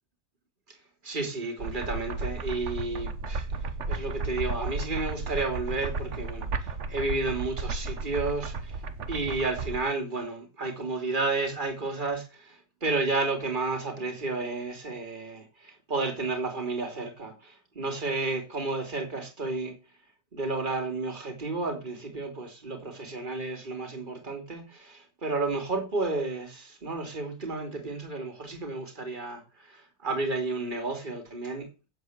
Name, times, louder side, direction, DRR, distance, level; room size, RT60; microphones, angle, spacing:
voice 1, 1.0-3.5 3.9-8.8 9.1-19.8 20.3-31.7, right 3 dB, 30° right, 3.2 m, -32 dB
sound 1, 1.6-9.8, right 3 dB, 50° right, 1.4 m, -34 dB
9.3 x 7.8 x 8.0 m
omnidirectional pair, 1.6 m